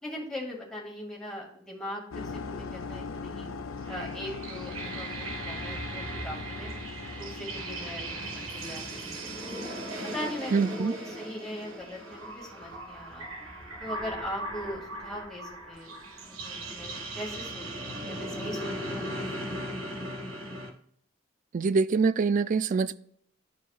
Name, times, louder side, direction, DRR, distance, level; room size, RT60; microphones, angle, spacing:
voice 1, 0.0-3.5 3.9-6.7 7.2-9.6 10.1-13.3 13.8-15.9 16.2-19.3, left 1 dB, 5° left, 2.2 m, -40 dB
sound 1, 2.1-9.7, left 4 dB, 80° left, 0.6 m, -40 dB
sound 2, 3.8-20.7, right 1 dB, 85° right, 1.4 m, -38 dB
voice 2, 10.5-10.9 21.5-23.0, right 4 dB, 40° right, 0.3 m, -25 dB
12.5 x 4.7 x 2.4 m
head